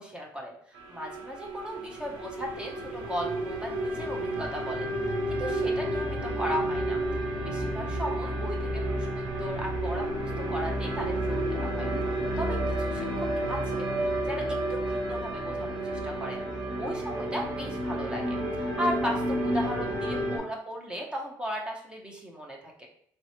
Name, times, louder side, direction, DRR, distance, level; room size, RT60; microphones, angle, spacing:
voice 1, 0.0-5.1 5.4-7.0 7.4-11.9 12.4-16.4 16.8-22.9, equal, 10° right, 0 dB, 0.6 m, -37 dB
sound 1, 0.7-20.4, right 1 dB, 85° right, 1.0 m, -31 dB
3.1 x 2.9 x 2.9 m, 0.67 s
cardioid pair, 125°, 8 cm